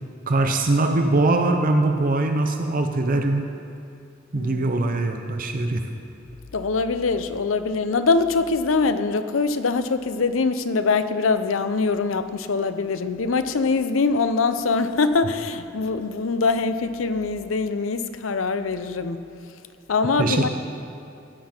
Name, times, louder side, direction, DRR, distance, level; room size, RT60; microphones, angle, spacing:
voice 1, 0.3-3.5 4.3-5.9 20.2-20.5, right 2 dB, 45° right, 5 dB, 0.6 m, -22 dB
voice 2, 4.3-4.7 6.5-19.2 19.9-20.5, left 4 dB, 90° left, 10 dB, 0.6 m, -23 dB
16.0 x 9.5 x 4.5 m, 2.6 s
head